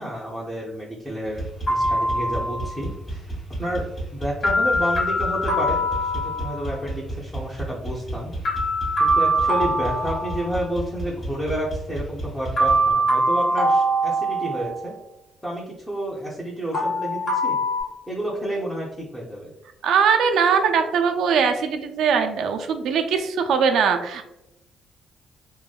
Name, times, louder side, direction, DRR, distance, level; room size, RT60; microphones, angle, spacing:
voice 1, 0.0-3.3 3.6-3.9 4.1-8.3 9.0-15.0 15.4-17.6 18.1-19.5, right 1 dB, 5° left, -6 dB, 0.6 m, -30 dB
sound 1, 1.2-12.9, right 2 dB, 30° left, 0.9 m, -33 dB
sound 2, 1.7-2.8 4.4-6.7 8.4-10.8 12.6-14.9 16.7-17.8, right 1 dB, 65° left, 1.3 m, -23 dB
voice 2, 19.8-24.2, right 6 dB, 75° right, 6 dB, 0.3 m, -21 dB
2.9 x 2.2 x 2.3 m, 0.87 s
cardioid pair, 90°, 0 cm